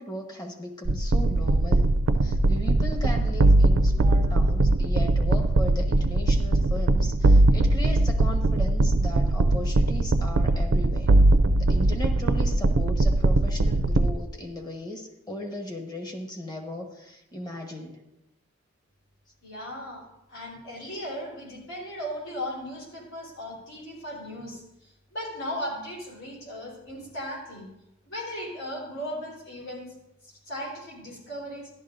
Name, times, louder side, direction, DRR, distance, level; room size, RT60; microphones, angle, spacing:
voice 1, 0.0-1.9 2.2-11.1 11.6-18.0, left 1 dB, 20° left, 1 dB, 1.2 m, -37 dB
sound 1, 0.9-14.2, right 2 dB, 80° right, 0.5 m, -21 dB
voice 2, 19.4-24.6 25.1-27.7 28.1-29.9 30.5-31.7, equal, 85° left, -4 dB, 3.8 m, -37 dB
12.5 x 11.5 x 2.6 m, 0.90 s
head